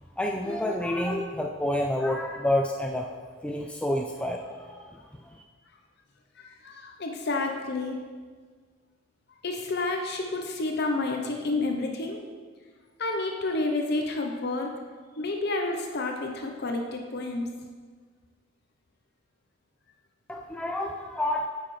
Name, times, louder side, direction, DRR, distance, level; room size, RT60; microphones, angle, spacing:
voice 1, 0.2-3.1 3.4-5.4 20.3-21.5, left 1 dB, 5° left, 1 dB, 0.4 m, -29 dB
voice 2, 6.4-8.0 9.4-12.2 13.0-14.7 15.2-17.5, left 2 dB, 60° left, 3 dB, 0.7 m, -30 dB
9.6 x 6.4 x 3.2 m, 1.5 s
head